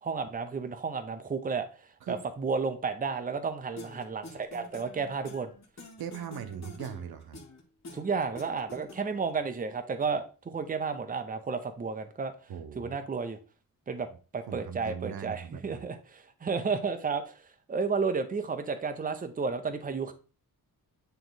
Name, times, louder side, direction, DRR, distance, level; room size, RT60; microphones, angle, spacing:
voice 1, 0.0-1.7 2.1-5.5 7.9-12.3 12.8-13.4 13.9-14.1 14.3-17.4 17.7-20.1, right 5 dB, 25° right, 0.6 m, -32 dB
sound 1, 3.8-9.3, left 2 dB, 45° left, 1.5 m, -47 dB
voice 2, 6.0-7.4 12.5-13.0 14.5-15.9, right 8 dB, 85° right, 0.8 m, -39 dB
9.1 x 3.1 x 3.9 m
wide cardioid pair, 165°, 36 cm